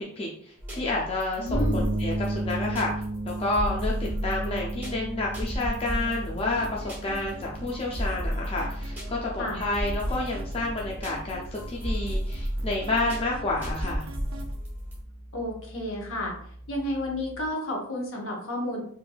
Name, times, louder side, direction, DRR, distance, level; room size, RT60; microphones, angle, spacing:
voice 1, 0.0-2.9 3.3-14.0, left 2 dB, 25° left, -2 dB, 0.3 m, -30 dB
sound 1, 0.6-15.0, equal, 10° right, 0.8 m, -34 dB
voice 2, 1.4-1.9 9.4-9.6 15.3-16.3 16.7-18.8, left 1 dB, 65° left, -1 dB, 0.9 m, -31 dB
sound 2, 1.5-17.5, right 1 dB, 40° right, 0.7 m, -36 dB
sound 3, 6.6-14.5, right 2 dB, 70° right, 0.4 m, -43 dB
3.2 x 2.5 x 2.2 m, 0.63 s
head